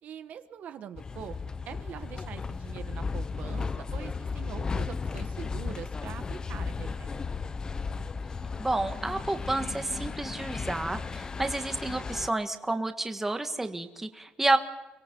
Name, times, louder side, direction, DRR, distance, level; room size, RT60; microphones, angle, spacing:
voice 1, 0.0-1.3 1.7-7.2, right 9 dB, 65° right, 9 dB, 1.3 m, -43 dB
sound 1, 1.0-12.3, left 4 dB, 25° left, 0.6 m, -35 dB
voice 2, 8.6-14.6, right 2 dB, 10° right, 6 dB, 1.5 m, -30 dB
24.5 x 20.5 x 5.4 m, 1.1 s
cardioid pair, 145°, 3 cm